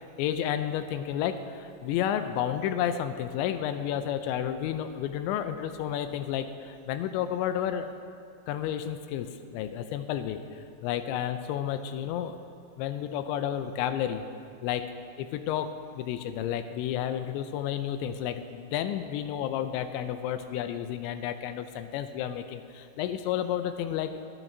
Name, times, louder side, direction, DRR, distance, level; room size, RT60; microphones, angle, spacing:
voice 1, 0.2-7.9 8.5-12.4 12.8-14.2 14.6-24.2, left 10 dB, 85° left, 9 dB, 2.8 m, -31 dB
24.5 x 8.9 x 2.7 m, 2.6 s
omnidirectional pair, 5.2 m